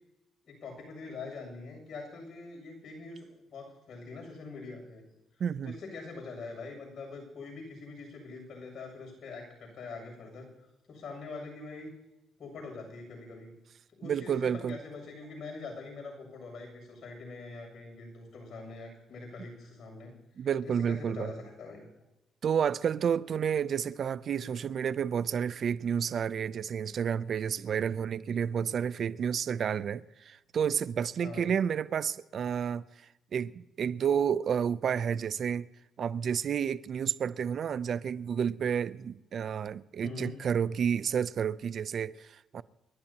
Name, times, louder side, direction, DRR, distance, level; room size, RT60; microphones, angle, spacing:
voice 1, 0.4-5.1 5.3-10.5 10.9-11.9 12.4-13.5 13.9-20.1 20.4-21.9 31.2-31.5 40.0-40.4, left 3 dB, 60° left, 7.2 m, -44 dB
voice 2, 5.4-5.7 14.0-14.8 20.4-21.3 22.4-35.7 36.0-42.6, right 7 dB, 55° right, 0.5 m, -30 dB
29.5 x 12.0 x 2.9 m
cardioid pair, 90°, 0 cm